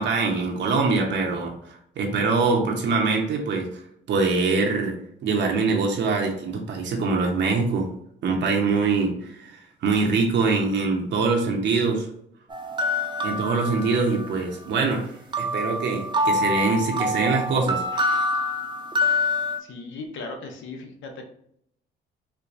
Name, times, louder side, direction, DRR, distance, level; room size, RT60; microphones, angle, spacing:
voice 1, 0.0-3.7 4.1-4.9 5.2-7.9 8.2-12.1 13.2-15.1 15.4-18.2, right 4 dB, 65° right, 1 dB, 0.7 m, -24 dB
sound 1, 12.5-14.3 15.3-19.6, left 1 dB, 25° right, 0.6 m, -26 dB
voice 2, 19.6-21.2, left 3 dB, 75° left, 3 dB, 0.8 m, -37 dB
4.4 x 2.2 x 2.6 m, 0.70 s
cardioid pair, 90°, 20 cm